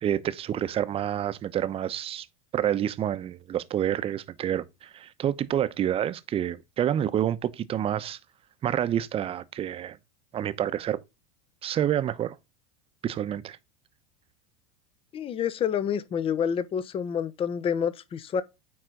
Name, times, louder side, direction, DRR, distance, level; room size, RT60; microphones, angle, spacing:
voice 1, 0.0-2.3 2.5-8.2 8.6-10.0 10.3-11.0 11.6-12.4 13.0-13.6, right 10 dB, 30° right, 0.9 m, -28 dB
voice 2, 15.1-18.4, left 8 dB, 30° left, 0.8 m, -28 dB
9.5 x 4.0 x 3.8 m
hypercardioid pair, 95°, 19 cm